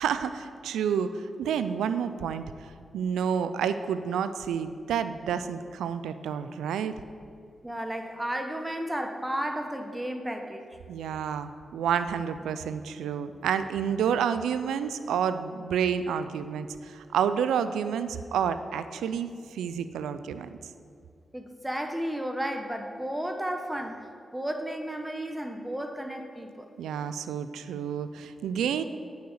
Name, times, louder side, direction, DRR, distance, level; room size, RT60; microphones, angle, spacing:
voice 1, 0.0-7.0 10.9-20.5 26.8-28.8, right 7 dB, 90° right, 12 dB, 0.4 m, -29 dB
voice 2, 7.6-10.7 21.3-26.7, right 1 dB, 15° right, 5 dB, 1.2 m, -33 dB
9.4 x 6.4 x 6.7 m, 2.4 s
supercardioid pair, 40°, 0 cm